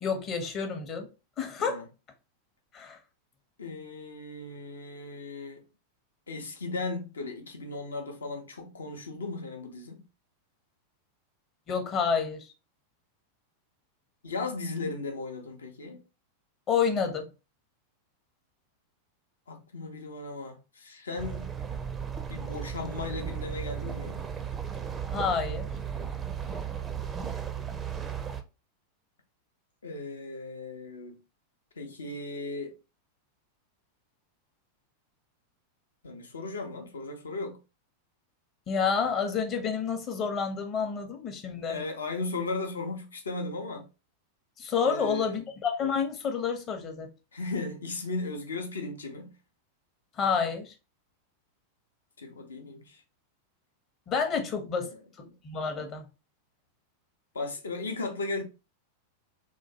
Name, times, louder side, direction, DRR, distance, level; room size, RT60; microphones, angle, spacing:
voice 1, 0.0-1.1 1.4-1.8 2.7-3.0 11.7-12.5 16.7-17.3 25.1-25.7 38.7-41.8 44.6-47.1 50.2-50.7 54.1-54.9 55.4-56.0, left 6 dB, 30° left, 0.7 m, -29 dB
voice 2, 3.6-5.6 6.3-10.0 14.2-16.0 19.5-21.5 22.3-24.2 26.5-27.0 29.8-31.2 31.8-32.8 36.0-37.6 41.7-43.8 44.8-45.4 47.3-49.3 52.2-53.0 55.3-55.4 57.3-58.4, left 3 dB, 70° left, 0.6 m, -36 dB
sound 1, 21.2-28.4, right 8 dB, 20° right, 0.4 m, -35 dB
3.0 x 2.3 x 2.7 m
figure-of-eight pair, 90°, 0 cm